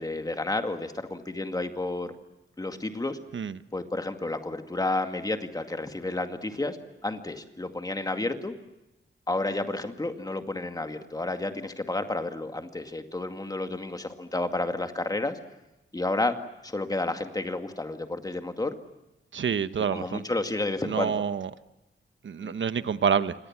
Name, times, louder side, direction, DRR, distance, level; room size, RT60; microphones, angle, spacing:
voice 1, 0.0-2.1 2.6-3.2 3.7-6.8 7.0-8.5 9.3-15.4 15.9-16.3 16.6-18.8 19.9-21.2 22.4-22.5, left 2 dB, 20° left, 6 dB, 2.2 m, -31 dB
voice 2, 19.3-20.2 20.8-21.5 22.2-23.3, right 7 dB, 70° right, 12 dB, 1.1 m, -27 dB
28.5 x 25.5 x 7.4 m, 0.97 s
wide cardioid pair, 165°, 21 cm